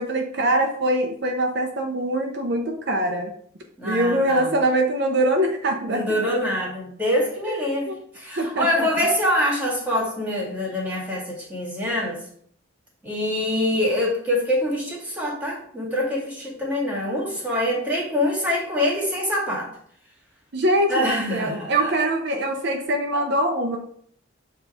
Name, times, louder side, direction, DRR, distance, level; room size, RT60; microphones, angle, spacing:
voice 1, 0.0-3.3 3.8-6.3 7.5-8.0 8.4-8.9 20.5-21.0 21.3-23.8, right 1 dB, 60° right, 2 dB, 0.7 m, -23 dB
voice 2, 3.8-4.6 5.9-12.2 13.0-19.7 20.9-21.9, left 1 dB, 10° right, -3 dB, 2.0 m, -25 dB
7.4 x 3.1 x 4.8 m, 0.62 s
head